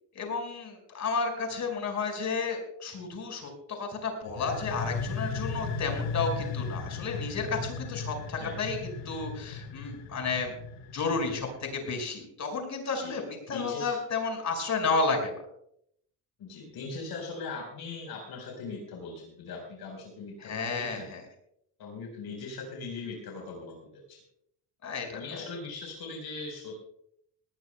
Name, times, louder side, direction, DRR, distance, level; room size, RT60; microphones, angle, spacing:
voice 1, 0.1-8.8 9.0-10.5 10.9-15.3 20.4-21.2 24.8-25.4, left 4 dB, 40° left, 3 dB, 5.0 m, -32 dB
sound 1, 4.2-11.9, left 4 dB, 85° left, 2.9 m, -36 dB
voice 2, 13.5-14.0 16.4-21.1 21.8-24.2 25.1-26.8, left 4 dB, 60° left, 0 dB, 4.4 m, -40 dB
20.0 x 18.0 x 2.2 m, 0.71 s
cardioid pair, 145°, 43 cm